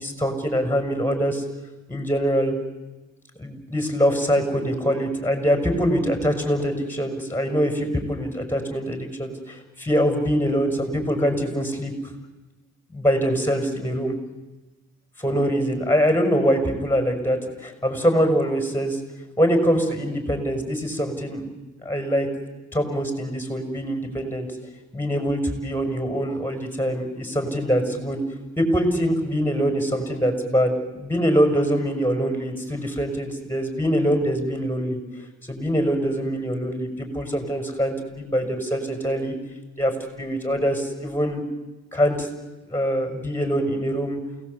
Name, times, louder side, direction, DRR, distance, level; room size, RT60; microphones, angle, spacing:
voice 1, 0.0-1.4 1.9-2.5 3.4-11.9 12.9-14.1 15.2-19.0 19.4-21.5 21.8-22.3 22.7-24.5 24.9-28.2 28.6-35.0 35.4-39.3 39.8-41.4 41.9-42.3 42.7-44.2, equal, 5° left, 6 dB, 6.1 m, -23 dB
28.5 x 18.5 x 8.3 m, 1.1 s
cardioid pair, 90°, 30 cm